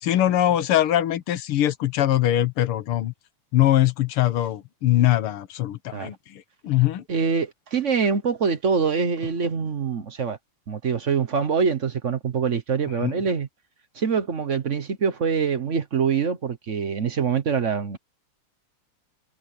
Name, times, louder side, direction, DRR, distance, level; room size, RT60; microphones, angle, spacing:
voice 1, 0.0-3.1 3.5-7.0 13.0-13.2, left 13 dB, 90° left, 2.0 m, -22 dB
voice 2, 7.1-10.4 10.7-13.5 13.9-18.0, right 6 dB, 45° right, 1.1 m, -24 dB
omnidirectional pair, 2.4 m